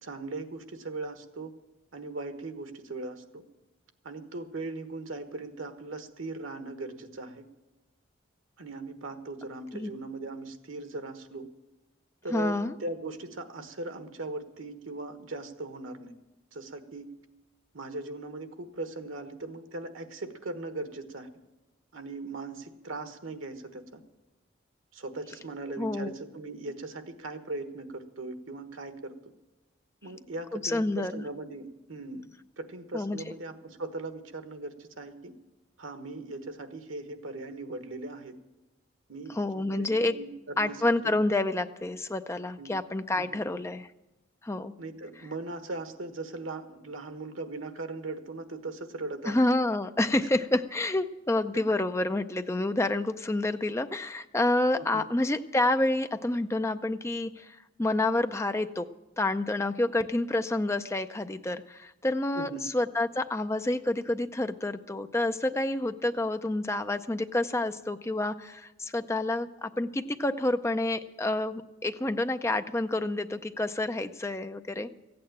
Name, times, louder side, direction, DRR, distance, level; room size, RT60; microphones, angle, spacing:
voice 1, 0.0-1.5 1.9-3.4 4.0-7.5 8.6-11.5 12.2-16.1 16.5-17.1 17.7-21.3 21.9-24.0 24.9-29.1 30.0-35.3 35.8-38.3 39.1-39.9 40.1-41.2 42.6-42.7 43.2-43.4 44.8-49.3 54.8-55.1 62.3-62.6, right 2 dB, 80° right, 9 dB, 1.3 m, -39 dB
voice 2, 12.3-12.7 25.8-26.1 30.5-31.2 32.9-33.2 39.4-40.2 40.6-43.9 44.4-44.7 49.3-58.9 59.2-74.9, left 2 dB, 15° left, 9 dB, 0.5 m, -28 dB
15.0 x 8.7 x 8.8 m, 1.0 s
head